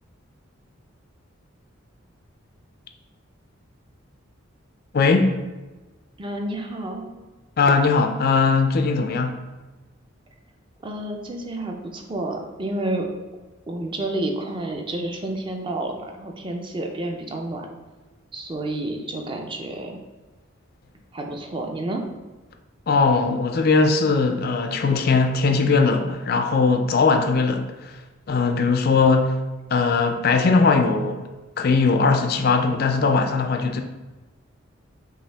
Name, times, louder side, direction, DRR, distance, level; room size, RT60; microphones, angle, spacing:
voice 1, 4.9-5.3 7.6-9.4 22.9-27.9 28.3-29.3 29.7-31.2 31.6-33.8, left 4 dB, 50° left, 5 dB, 0.4 m, -19 dB
voice 2, 6.2-7.1 10.8-13.1 13.7-17.7 18.3-20.0 21.1-22.0, right 1 dB, 25° right, 3 dB, 0.5 m, -30 dB
5.5 x 2.7 x 3.4 m, 1.2 s
head